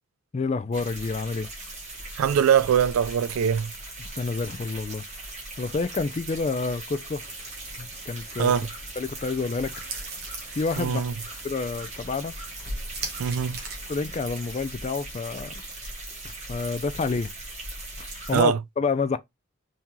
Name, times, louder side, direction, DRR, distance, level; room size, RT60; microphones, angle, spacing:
voice 1, 0.3-1.5 4.2-5.0 5.6-7.2 7.8-8.5 9.0-9.8 10.5-11.0 11.4-12.3 13.9-15.6 16.2-17.3 18.0-19.2, left 4 dB, 30° left, 0.3 m, -29 dB
sound 1, 0.7-18.4, right 2 dB, 35° right, 1.3 m, -39 dB
voice 2, 2.2-3.7 8.4-8.7 10.8-11.1 13.2-13.6 18.3-18.6, right 8 dB, 85° right, 0.3 m, -22 dB
sound 2, 7.2-14.1, right 3 dB, 50° right, 1.1 m, -41 dB
3.6 x 2.8 x 2.9 m
head